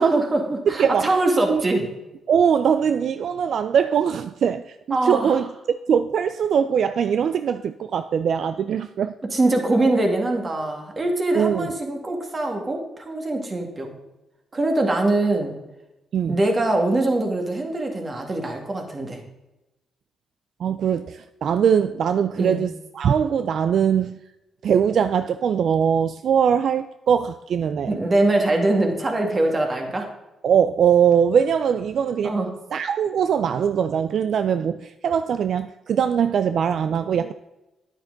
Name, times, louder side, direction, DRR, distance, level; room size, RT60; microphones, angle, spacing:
voice 1, 0.0-1.9 4.9-5.4 9.3-13.9 14.5-15.6 16.3-19.2 22.3-22.6 27.9-30.1 32.2-32.5, right 2 dB, 30° right, 2.0 m, -23 dB
voice 2, 0.7-1.2 1.5-1.6 2.3-5.5 5.9-9.1 11.3-11.8 16.1-16.4 20.6-24.2 24.6-28.0 30.4-32.4 32.7-37.3, right 8 dB, 65° right, 0.3 m, -21 dB
9.8 x 8.9 x 3.9 m
cardioid pair, 95°, 0 cm